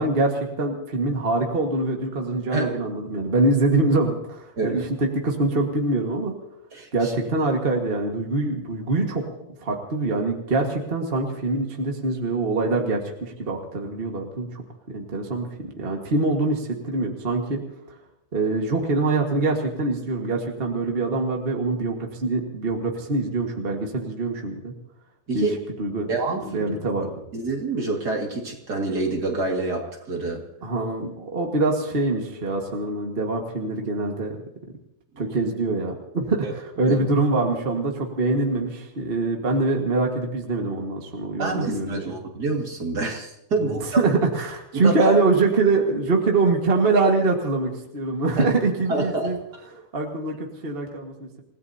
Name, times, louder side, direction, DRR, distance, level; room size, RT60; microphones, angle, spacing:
voice 1, 0.0-6.3 6.9-9.2 9.6-14.6 14.9-17.6 18.3-24.7 25.3-25.5 25.8-26.1 26.5-27.1 30.6-34.4 35.2-42.1 43.6-49.4 49.9-51.4, right 3 dB, 30° right, 1 dB, 1.8 m, -24 dB
voice 2, 6.7-7.1 25.3-25.6 26.1-26.7 27.3-30.5 36.4-36.5 36.9-37.0 41.4-44.0 44.7-45.2 48.4-48.5 48.9-49.7, right 3 dB, 55° right, 1 dB, 2.7 m, -27 dB
28.5 x 17.0 x 2.8 m, 0.81 s
omnidirectional pair, 2.2 m